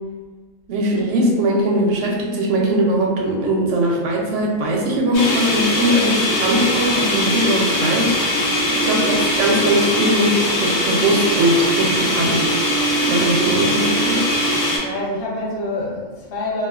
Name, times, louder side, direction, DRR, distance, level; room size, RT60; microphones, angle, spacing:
voice 1, 0.7-8.1 8.7-12.4 13.1-14.3, right 1 dB, 70° right, -1 dB, 0.8 m, -20 dB
sound 1, 5.1-14.8, left 1 dB, 85° left, 1.2 m, -20 dB
voice 2, 8.6-9.0 14.8-16.7, left 1 dB, 60° left, -6 dB, 1.0 m, -27 dB
2.4 x 2.3 x 2.3 m, 1.4 s
omnidirectional pair, 1.4 m